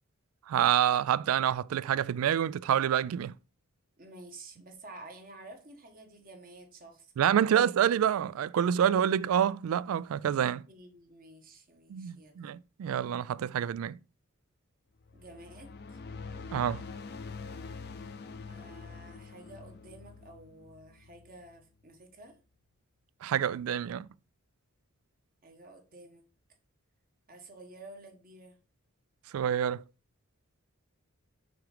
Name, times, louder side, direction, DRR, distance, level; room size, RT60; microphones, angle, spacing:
voice 1, 0.5-3.3 7.2-10.6 11.9-14.0 16.5-16.8 23.2-24.1 29.3-29.8, right 9 dB, 75° right, 0.3 m, -27 dB
voice 2, 4.0-7.1 7.4-7.6 10.7-12.4 15.1-16.0 18.5-22.3 25.4-26.2 27.3-28.6, right 2 dB, 40° right, 1.3 m, -51 dB
sound 1, 15.0-21.6, left 4 dB, 50° left, 0.5 m, -45 dB
6.0 x 3.7 x 5.0 m
head